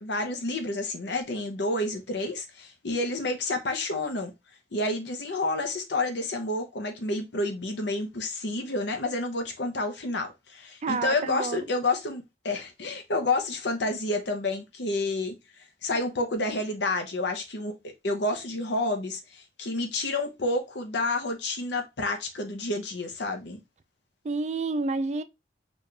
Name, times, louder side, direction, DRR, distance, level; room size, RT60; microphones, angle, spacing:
voice 1, 0.0-4.3 4.7-15.3 15.8-17.7 18.0-23.6, left 2 dB, 80° left, 0.8 m, -29 dB
voice 2, 10.8-11.6 24.2-25.2, right 3 dB, 40° right, 0.3 m, -29 dB
4.1 x 2.5 x 3.2 m
head